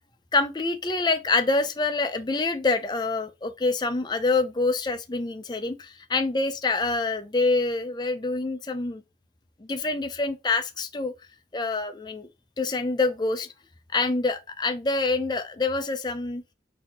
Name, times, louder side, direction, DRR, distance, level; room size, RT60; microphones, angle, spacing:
voice 1, 0.3-9.0 9.6-11.1 11.5-12.3 12.6-13.5 13.9-16.4, left 3 dB, 25° left, 0.5 m, -26 dB
4.3 x 2.8 x 4.1 m
head